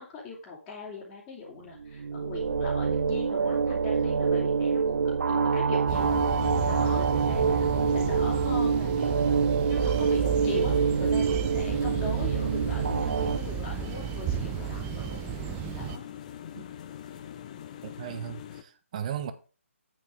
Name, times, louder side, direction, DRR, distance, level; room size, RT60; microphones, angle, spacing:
voice 1, 0.0-5.0 5.3-6.3 6.6-9.2 9.7-16.0, left 4 dB, 15° left, 3.2 m, -40 dB
sound 1, 1.8-13.4, right 5 dB, 60° right, 0.4 m, -26 dB
sound 2, 5.9-16.0, right 8 dB, 15° right, 0.6 m, -33 dB
sound 3, 9.8-18.6, left 9 dB, 30° left, 1.0 m, -43 dB
voice 2, 17.8-19.3, right 9 dB, 30° right, 1.2 m, -36 dB
8.9 x 8.5 x 3.7 m
figure-of-eight pair, 145°, 7 cm